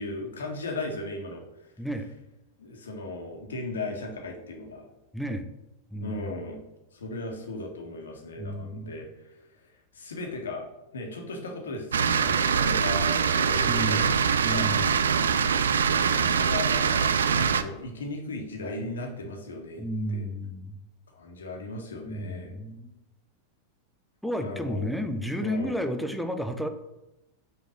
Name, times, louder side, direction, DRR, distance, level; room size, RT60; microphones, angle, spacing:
voice 1, 0.0-1.7 2.6-4.8 6.0-6.6 6.9-10.7 10.9-14.7 15.2-20.3 21.1-22.5 24.4-24.9 25.4-25.8, left 2 dB, 70° left, 2 dB, 1.6 m, -37 dB
voice 2, 5.1-5.4 5.9-6.2 8.4-9.0 13.6-14.2 14.4-15.0 19.8-20.8 22.1-22.9 24.2-26.7, equal, ahead, 7 dB, 0.7 m, -32 dB
sound 1, 11.9-17.6, right 6 dB, 65° right, 0.4 m, -23 dB
6.0 x 5.0 x 6.5 m, 0.94 s
figure-of-eight pair, 90°, 0 cm